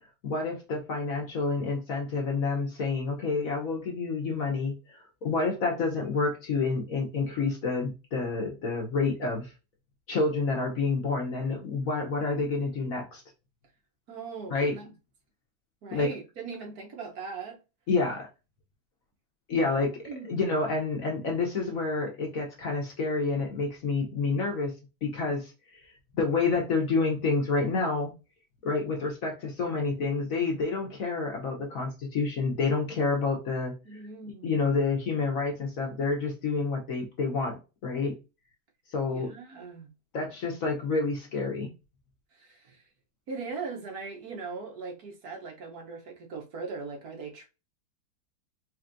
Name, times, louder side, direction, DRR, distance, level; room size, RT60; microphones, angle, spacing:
voice 1, 0.2-9.5 10.1-13.2 14.5-14.7 15.9-16.1 17.9-18.3 19.5-24.7 25.0-25.5 26.1-28.1 28.6-33.7 34.4-38.2 38.9-39.3 40.1-41.7, left 3 dB, 55° left, 1.2 m, -28 dB
voice 2, 14.1-14.9 15.8-17.6 20.0-20.3 33.8-34.7 39.1-39.9 42.3-42.8 43.3-47.5, right 4 dB, 60° right, 1.3 m, -39 dB
4.3 x 3.1 x 2.5 m
omnidirectional pair, 2.0 m